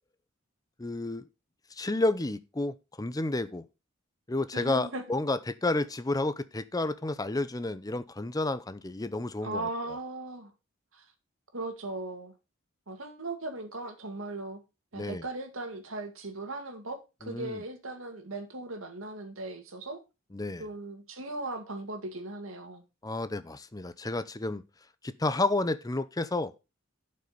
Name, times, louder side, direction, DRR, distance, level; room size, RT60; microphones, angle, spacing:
voice 1, 0.8-1.2 1.8-3.6 4.3-9.7 14.9-15.2 17.2-17.6 20.3-20.7 23.0-24.6 25.0-26.5, left 2 dB, 20° left, 0.6 m, -31 dB
voice 2, 4.5-5.0 9.4-10.5 10.9-11.1 11.5-12.3 12.9-14.6 14.9-20.0 20.6-22.8, right 2 dB, 85° right, 2.1 m, -38 dB
11.5 x 5.5 x 5.1 m
head